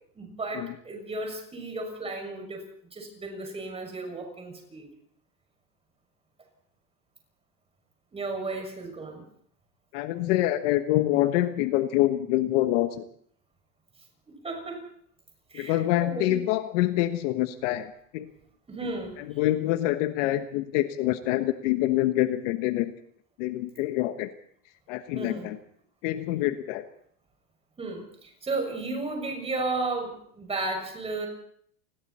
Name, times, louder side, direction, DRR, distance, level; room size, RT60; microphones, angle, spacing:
voice 1, 0.1-2.6 2.9-4.9 8.1-9.2 14.4-14.8 15.5-16.4 18.7-19.4 25.1-25.5 27.8-31.3, right 3 dB, 15° right, 3 dB, 6.5 m, -34 dB
voice 2, 9.9-13.0 15.5-18.3 18.8-18.9 19.2-22.9 23.4-24.3 24.9-25.6 26.0-26.9, left 15 dB, 50° left, 9 dB, 1.3 m, -26 dB
29.5 x 21.5 x 4.3 m, 0.64 s
supercardioid pair, 150°, 46 cm